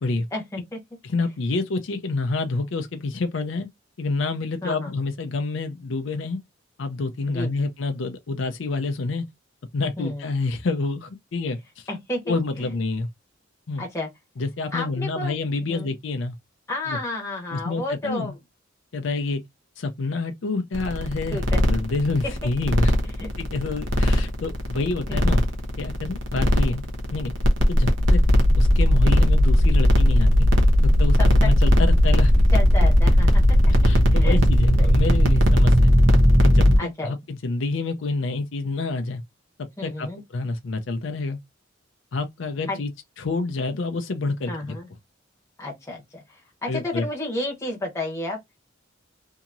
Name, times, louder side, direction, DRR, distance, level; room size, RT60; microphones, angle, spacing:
voice 1, 0.3-0.8 4.6-4.9 7.3-7.7 10.0-10.3 11.9-12.7 13.8-14.1 14.7-15.3 15.6-15.9 16.7-18.4 21.3-21.6 23.2-23.3 25.1-25.2 27.8-27.9 31.2-31.5 32.5-33.4 34.1-34.4 34.8-35.0 36.8-37.1 39.8-40.2 42.7-42.8 44.5-44.9 45.6-48.4, left 2 dB, 15° left, 1.1 m, -31 dB
voice 2, 1.0-3.7 4.0-6.4 6.8-9.2 9.7-11.9 12.3-13.1 13.7-13.8 14.4-16.3 16.9-17.0 17.5-18.3 18.9-19.4 19.8-21.4 21.7-22.9 23.4-25.4 25.8-26.8 27.1-27.3 27.7-28.2 28.6-30.5 30.8-32.3 33.8-35.9 36.4-39.2 39.8-40.1 40.3-41.4 42.1-42.9 43.2-44.8 46.7-47.1, left 3 dB, 70° left, 0.5 m, -28 dB
sound 1, 20.7-36.8, equal, 70° right, 0.9 m, -17 dB
2.8 x 2.8 x 2.5 m
head